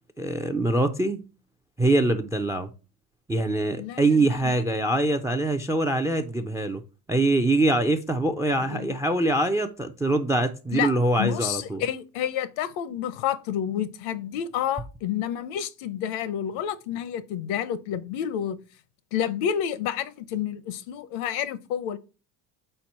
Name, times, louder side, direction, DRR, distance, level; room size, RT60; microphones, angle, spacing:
voice 1, 0.2-1.3 1.8-2.7 3.3-6.8 7.1-11.8, right 2 dB, 5° right, 0.3 m, -24 dB
voice 2, 3.8-4.6 8.6-8.9 10.7-10.9 11.2-18.6 19.1-22.0, left 9 dB, 70° left, 0.8 m, -29 dB
4.5 x 4.1 x 5.3 m
supercardioid pair, 80°, 49 cm